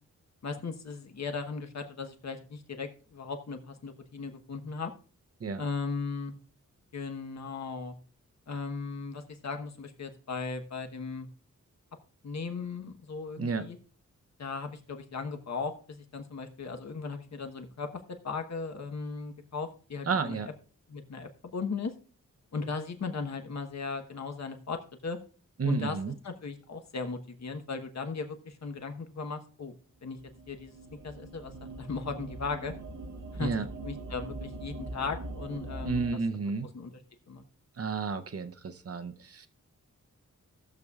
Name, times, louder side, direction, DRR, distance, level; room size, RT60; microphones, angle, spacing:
voice 1, 0.4-4.9 5.6-6.4 6.9-7.9 8.5-11.3 12.2-13.8 14.4-17.9 18.2-20.4 20.9-21.9 22.5-25.2 25.6-26.0 26.2-30.2 30.5-30.8 31.0-31.5 31.8-32.7 33.3-33.5 33.8-36.0 36.7-36.9 37.3-37.4, left 4 dB, 60° left, 6 dB, 1.1 m, -37 dB
voice 2, 13.4-13.7 20.1-20.5 25.6-26.1 33.4-33.7 35.8-36.7 37.8-39.5, right 5 dB, 50° right, 9 dB, 0.7 m, -31 dB
sound 1, 30.2-36.1, right 2 dB, 75° right, 1.1 m, -42 dB
18.0 x 6.8 x 2.4 m, 0.40 s
wide cardioid pair, 130°, 31 cm